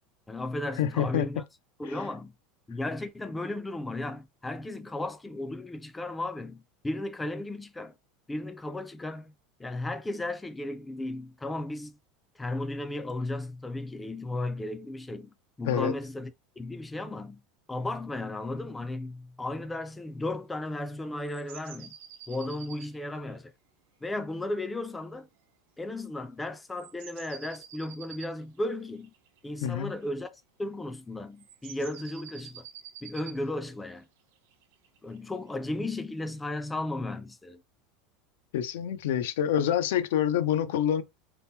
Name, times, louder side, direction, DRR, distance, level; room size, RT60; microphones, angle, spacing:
voice 1, 0.3-1.4 1.8-2.3 2.7-7.9 8.3-9.3 9.6-12.0 12.4-15.3 15.6-16.3 16.6-17.4 17.7-21.9 22.3-23.5 24.0-25.3 25.8-29.1 29.4-32.7 33.0-34.1 35.0-37.6, left 2 dB, 10° left, 0.3 m, -35 dB
voice 2, 0.8-1.3 1.9-2.0 15.6-15.9 29.6-29.9 38.5-41.0, left 10 dB, 80° left, 0.4 m, -27 dB
sound 1, 21.2-23.3 26.8-30.0 31.4-33.4 34.4-35.5 36.6-36.7, right 9 dB, 80° right, 0.6 m, -48 dB
2.8 x 2.0 x 3.5 m
supercardioid pair, 130°, 0 cm